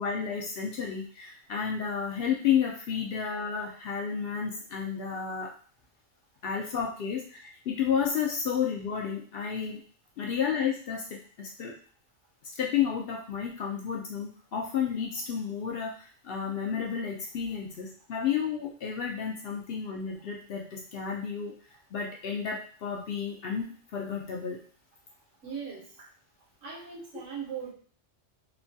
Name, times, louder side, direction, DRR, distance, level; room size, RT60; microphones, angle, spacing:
voice 1, 0.0-5.5 6.4-9.8 10.2-11.7 12.6-21.5 21.9-24.6, left 7 dB, 65° left, -1 dB, 0.7 m, -31 dB
voice 2, 25.4-26.1 26.6-27.7, right 7 dB, 80° right, -4 dB, 1.3 m, -39 dB
3.0 x 2.2 x 2.6 m, 0.44 s
omnidirectional pair, 1.2 m